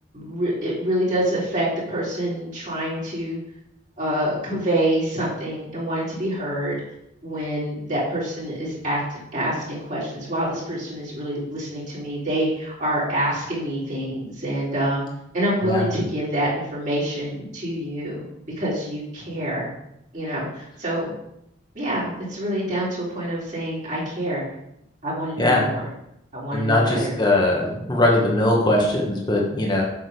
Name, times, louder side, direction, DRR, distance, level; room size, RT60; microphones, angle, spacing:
voice 1, 0.1-3.4 4.0-6.8 7.2-15.0 15.3-18.2 18.6-19.7 20.1-21.1 21.8-24.4 25.0-25.9 26.3-27.1, right 1 dB, 40° right, -7 dB, 3.5 m, -26 dB
voice 2, 26.5-29.8, left 1 dB, 20° left, -2 dB, 1.6 m, -20 dB
8.3 x 6.7 x 5.0 m, 0.81 s
head